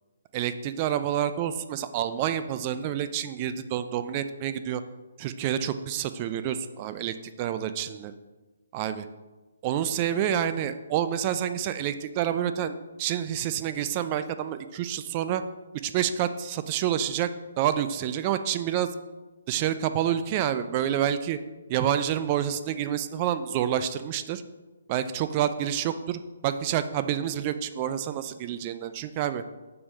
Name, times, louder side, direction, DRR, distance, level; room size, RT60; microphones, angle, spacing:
voice 1, 0.3-4.8 5.2-8.1 8.7-9.0 9.6-15.4 15.8-17.3 17.6-18.9 19.5-21.4 21.7-24.4 24.9-29.4, right 10 dB, 30° right, 11 dB, 0.4 m, -28 dB
6.8 x 3.4 x 5.4 m, 1.2 s
figure-of-eight pair, 135°, 0 cm